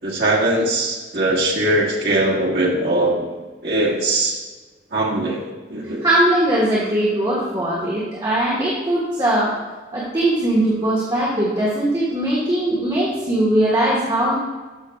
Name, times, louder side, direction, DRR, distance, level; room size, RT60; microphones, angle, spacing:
voice 1, 0.0-3.3 3.6-4.4 4.9-5.4 5.7-6.1, right 1 dB, 65° right, -3 dB, 1.6 m, -20 dB
voice 2, 6.0-9.5 9.9-14.3, right 1 dB, 25° right, -6 dB, 1.4 m, -20 dB
13.5 x 6.4 x 2.4 m, 1.3 s
head